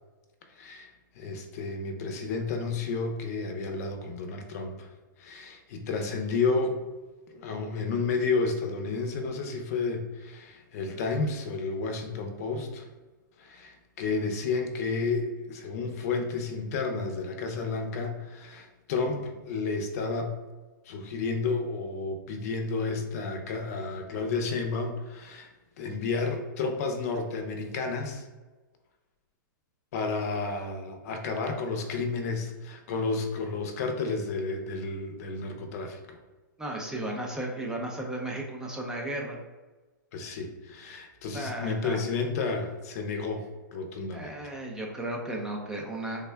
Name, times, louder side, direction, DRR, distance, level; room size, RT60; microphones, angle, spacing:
voice 1, 0.6-0.9 1.2-4.9 5.2-6.8 7.3-12.9 13.4-20.3 20.9-25.5 25.8-28.2 29.9-36.2 40.1-43.4 43.7-44.3, left 4 dB, 50° left, 5 dB, 0.6 m, -31 dB
voice 2, 36.6-39.4 41.3-42.0 44.1-46.3, right 1 dB, 5° right, -1 dB, 0.3 m, -34 dB
3.5 x 2.2 x 3.3 m, 1.2 s
hypercardioid pair, 145°, 11 cm